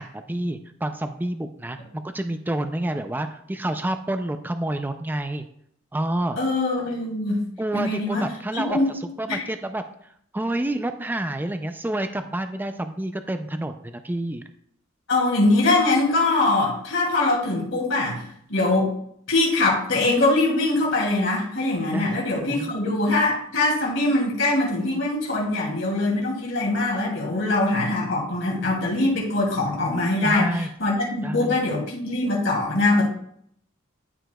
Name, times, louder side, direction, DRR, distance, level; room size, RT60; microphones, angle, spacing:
voice 1, 0.0-5.4 5.9-6.4 7.6-8.8 9.2-9.8 10.3-14.4 21.9-22.2 22.5-22.7 30.2-30.7 31.2-31.6, right 1 dB, 10° right, 7 dB, 0.4 m, -28 dB
voice 2, 6.4-7.4 7.7-8.2 8.5-8.9 9.3-9.5 15.1-18.9 19.3-33.1, left 2 dB, 65° left, -3 dB, 2.6 m, -22 dB
12.5 x 5.0 x 2.3 m, 0.68 s
head